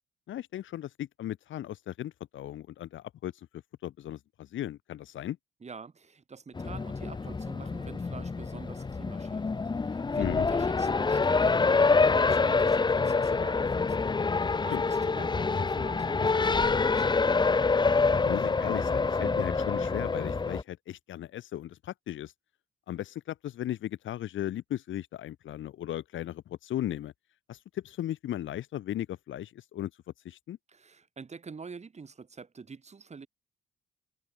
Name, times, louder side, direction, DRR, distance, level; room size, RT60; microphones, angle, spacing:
voice 1, 0.3-5.4 10.2-10.5 14.7-14.8 18.1-22.3 22.9-27.1 27.5-29.9 30.2-30.6, left 12 dB, 75° left, 3.7 m, -36 dB
voice 2, 5.6-14.0 14.2-17.5 30.7-33.3, right 5 dB, 35° right, 4.5 m, -47 dB
Race car auto racing, 6.6-20.6, left 4 dB, 20° left, 0.9 m, -26 dB
cardioid pair, 90°, 20 cm